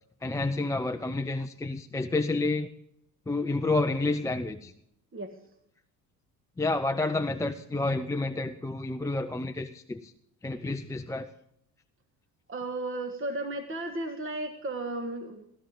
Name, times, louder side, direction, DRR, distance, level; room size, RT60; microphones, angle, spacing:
voice 1, 0.2-2.7 3.3-4.7 6.6-10.1 10.4-11.3, left 2 dB, 5° left, 6 dB, 0.5 m, -29 dB
voice 2, 12.5-15.5, right 2 dB, 25° right, 6 dB, 1.7 m, -34 dB
16.0 x 12.5 x 3.7 m, 0.74 s
hypercardioid pair, 60°, 48 cm